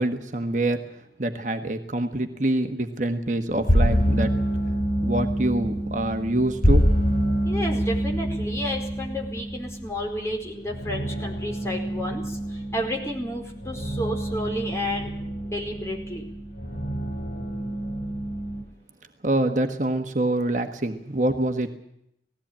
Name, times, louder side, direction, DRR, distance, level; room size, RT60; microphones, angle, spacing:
voice 1, 0.0-4.3 5.0-6.9 19.2-21.7, right 1 dB, 45° right, 6 dB, 1.4 m, -26 dB
sound 1, 3.5-18.6, equal, 55° left, 3.2 m, -26 dB
voice 2, 7.4-15.1 15.4-16.2, equal, 15° left, 1 dB, 4.8 m, -31 dB
19.0 x 16.5 x 8.9 m, 0.76 s
head